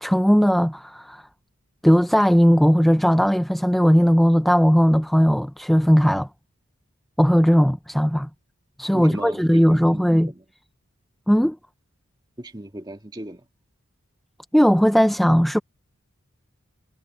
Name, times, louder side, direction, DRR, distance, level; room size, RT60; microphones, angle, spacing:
voice 1, 0.0-1.2 1.8-6.3 7.2-8.3 8.8-10.3 11.3-11.6 14.5-15.6, equal, ahead, 0.4 m, -18 dB
voice 2, 8.9-10.4 12.4-13.4, right 1 dB, 20° right, 1.9 m, -37 dB
head